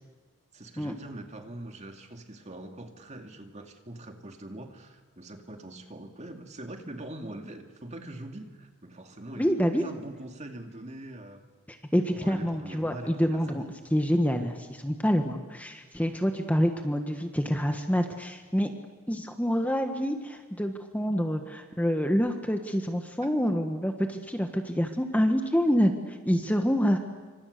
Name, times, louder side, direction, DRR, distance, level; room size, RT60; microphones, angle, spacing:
voice 1, 0.5-11.5 12.1-13.8 23.2-23.3, right 1 dB, 30° right, 5 dB, 2.4 m, -43 dB
voice 2, 9.4-9.8 11.7-13.6 13.9-18.7 19.1-27.0, equal, 5° left, 5 dB, 1.5 m, -27 dB
28.0 x 25.5 x 6.8 m, 1.5 s
head